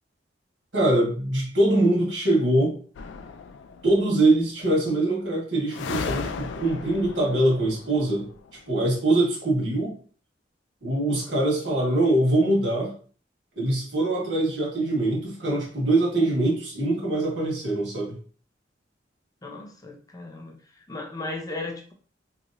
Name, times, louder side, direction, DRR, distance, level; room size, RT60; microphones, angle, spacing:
voice 1, 0.7-2.8 3.8-8.3 8.7-9.9 10.8-12.9 13.5-18.1, right 1 dB, 80° right, 1.5 m, -23 dB
sound 1, 2.9-4.1 5.7-8.6, left 5 dB, 70° left, 0.3 m, -36 dB
voice 2, 19.4-20.6 20.9-21.9, left 2 dB, 20° left, 0.5 m, -36 dB
3.0 x 2.8 x 2.6 m
head